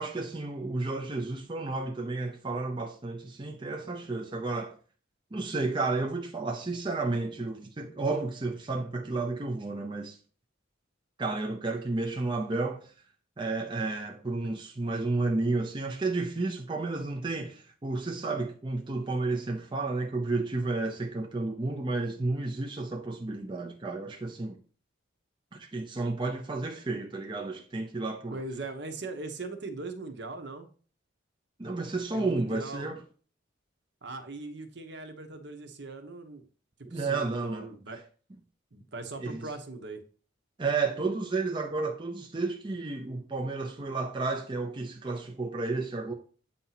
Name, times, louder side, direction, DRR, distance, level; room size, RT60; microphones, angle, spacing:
voice 1, 0.0-4.8 5.3-10.2 11.2-12.9 13.4-24.6 25.5-28.4 31.6-33.0 36.8-37.7 39.2-39.5 40.6-46.1, right 3 dB, 25° right, 0.5 m, -32 dB
voice 2, 28.3-30.7 32.1-32.9 34.0-36.5 36.9-38.0 38.7-40.0, right 3 dB, 55° right, 1.0 m, -40 dB
8.4 x 2.8 x 5.7 m
head